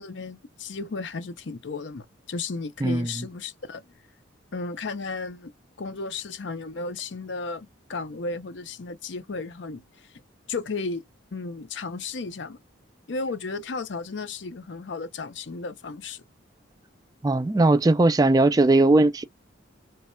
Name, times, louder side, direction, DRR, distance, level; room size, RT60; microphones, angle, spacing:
voice 1, 0.0-3.9 4.5-5.5 5.8-9.8 10.5-11.0 11.3-12.6 13.1-16.2, left 3 dB, 65° left, 0.6 m, -34 dB
voice 2, 2.8-3.3 17.2-19.2, right 2 dB, 20° right, 0.3 m, -19 dB
3.3 x 2.2 x 4.2 m
head